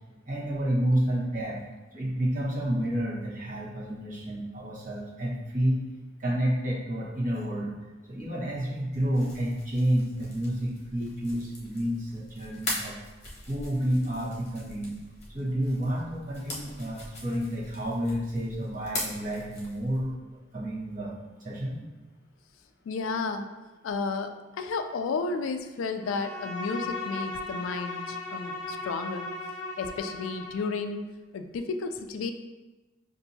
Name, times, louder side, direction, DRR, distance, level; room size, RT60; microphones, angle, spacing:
voice 1, 0.3-1.6 1.9-5.8 6.2-7.7 8.1-13.0 13.5-14.9 15.3-20.1 20.5-21.8, right 1 dB, 40° right, -5 dB, 1.0 m, -30 dB
sound 1, 8.9-20.1, left 1 dB, 35° left, 1.0 m, -41 dB
voice 2, 22.9-23.5 23.8-29.3 29.8-31.1 31.3-32.3, left 4 dB, 85° left, 7 dB, 0.3 m, -32 dB
Bowed string instrument, 26.0-30.8, left 2 dB, 10° left, 0.8 m, -37 dB
5.5 x 2.6 x 2.7 m, 1.1 s
head